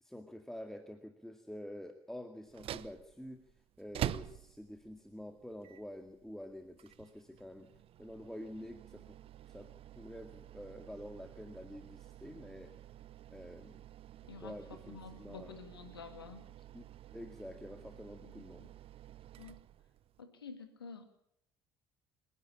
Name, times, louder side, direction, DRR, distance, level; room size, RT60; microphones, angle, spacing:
voice 1, 0.0-3.5 3.8-7.7 8.0-9.2 9.4-9.7 10.0-12.7 13.3-13.8 14.4-15.5 16.7-16.8 17.1-18.7, left 1 dB, 5° left, 5 dB, 2.2 m, -48 dB
sound 1, 2.4-20.2, right 12 dB, 50° right, 0.8 m, -48 dB
voice 2, 14.2-14.6 14.9-16.4 18.2-18.7 19.4-19.6 20.2-21.1, left 5 dB, 90° left, 8 dB, 2.1 m, -50 dB
27.0 x 11.0 x 8.6 m, 0.78 s
hypercardioid pair, 55°, 12 cm